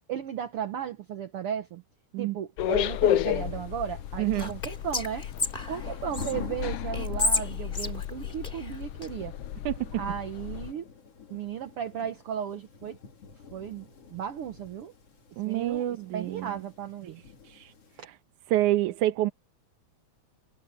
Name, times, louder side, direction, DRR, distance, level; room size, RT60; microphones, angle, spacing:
voice 1, 0.1-1.8 2.2-5.3 5.7-9.3 9.9-10.9 11.3-13.0 13.5-14.9 15.4-17.2 18.0-18.1, right 9 dB, 60° right, 1.6 m, -35 dB
sound 1, 2.6-10.7, left 12 dB, 75° left, 1.4 m, -32 dB
sound 2, 2.8-18.0, left 6 dB, 55° left, 3.7 m, -46 dB
voice 2, 4.2-4.5 9.7-9.9 15.4-16.5 17.4-17.7 18.5-19.3, right 14 dB, 85° right, 2.5 m, -27 dB
Whispering, 4.3-6.3 6.9-9.1, left 3 dB, 20° left, 2.4 m, -31 dB
omnidirectional pair, 3.4 m